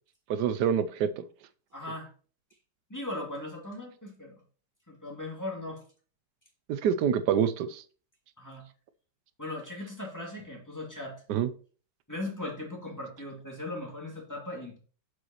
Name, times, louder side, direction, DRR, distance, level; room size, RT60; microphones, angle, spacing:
voice 1, 0.3-1.2 6.7-7.8 11.3-11.5, right 8 dB, 75° right, 13 dB, 1.1 m, -26 dB
voice 2, 1.7-2.1 2.9-4.4 4.9-5.8 8.4-8.6 9.4-11.2 12.1-14.8, left 2 dB, 10° left, -2 dB, 2.2 m, -38 dB
7.3 x 6.3 x 3.0 m, 0.40 s
omnidirectional pair, 2.0 m